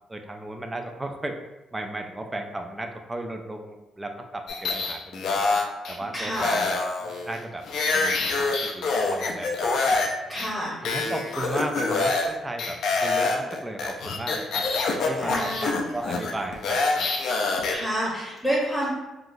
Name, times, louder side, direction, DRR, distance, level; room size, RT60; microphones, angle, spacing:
voice 1, 0.1-1.4 1.7-5.5 5.9-7.7 7.9-9.7 10.3-10.5 10.8-14.7 15.1-17.1, right 1 dB, 15° right, 4 dB, 0.3 m, -35 dB
sound 1, 4.5-6.0 6.3-10.1 10.4-10.5 10.8-12.3 12.6-17.8, left 3 dB, 75° left, 0.4 m, -26 dB
voice 2, 6.1-6.7 10.3-10.9 15.1-15.8 17.7-18.9, equal, 5° left, -5 dB, 0.9 m, -29 dB
3.6 x 2.4 x 2.5 m, 1.1 s
cardioid pair, 90°, 0 cm